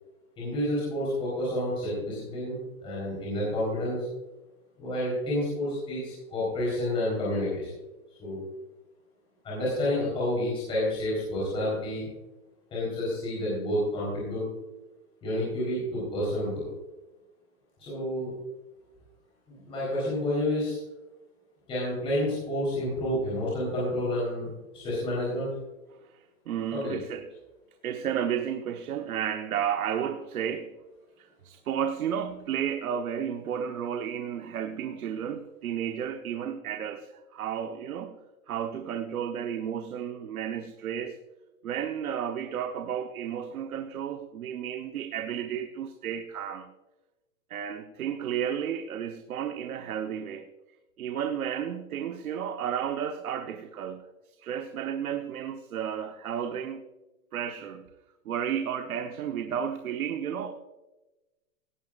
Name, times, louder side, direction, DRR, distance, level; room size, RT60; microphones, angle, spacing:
voice 1, 0.4-4.1 4.8-7.7 8.2-8.4 9.4-12.1 12.7-14.4 15.2-16.7 17.8-18.3 19.5-20.8 21.7-25.5 26.7-27.0, left 1 dB, 10° left, -8 dB, 4.0 m, -29 dB
voice 2, 26.5-27.3 27.8-30.7 31.2-38.2 38.5-41.2 41.6-46.7 47.5-50.5 51.0-54.0 54.4-56.8 57.3-57.9 58.2-60.5, right 8 dB, 85° right, 6 dB, 1.2 m, -32 dB
18.0 x 11.5 x 2.5 m, 1.1 s
hypercardioid pair, 180°, 42 cm